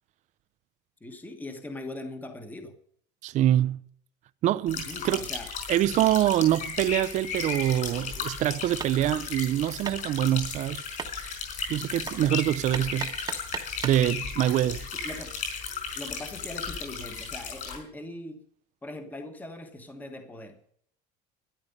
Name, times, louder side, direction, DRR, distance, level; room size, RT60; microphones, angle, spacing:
voice 1, 1.0-2.8 4.8-5.5 14.9-15.4 15.9-18.4 18.8-20.7, left 2 dB, 10° left, 1.3 m, -40 dB
voice 2, 3.2-3.8 4.4-5.2 5.7-10.8 11.7-13.1 13.8-14.9, right 12 dB, 35° right, 0.5 m, -25 dB
sound 1, 4.7-17.8, left 5 dB, 40° left, 5.2 m, -35 dB
Hammer, 8.8-14.1, right 6 dB, 20° right, 1.1 m, -40 dB
13.0 x 10.5 x 5.4 m
cardioid pair, 155°, 21 cm